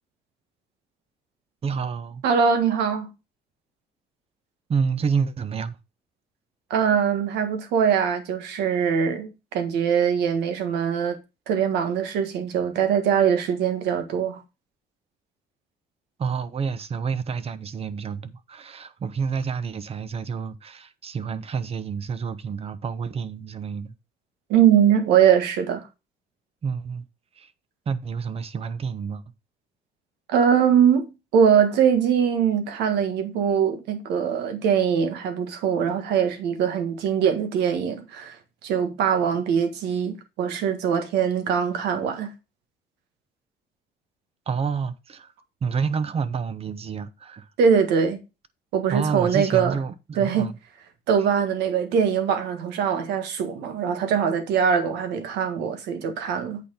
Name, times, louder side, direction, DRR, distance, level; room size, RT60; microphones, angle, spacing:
voice 1, 1.6-2.2 4.7-5.8 16.2-23.9 26.6-27.0 27.4-27.5 27.9-29.2 44.5-45.3 45.6-47.5 48.9-50.6, right 6 dB, 35° right, 0.8 m, -29 dB
voice 2, 2.2-3.1 6.7-11.2 11.5-14.4 24.5-25.9 30.3-38.4 38.6-42.3 47.6-48.2 48.7-49.8 50.2-50.5 51.1-56.6, right 7 dB, 85° right, 1.5 m, -22 dB
8.3 x 4.3 x 5.1 m
cardioid pair, 110°, 17 cm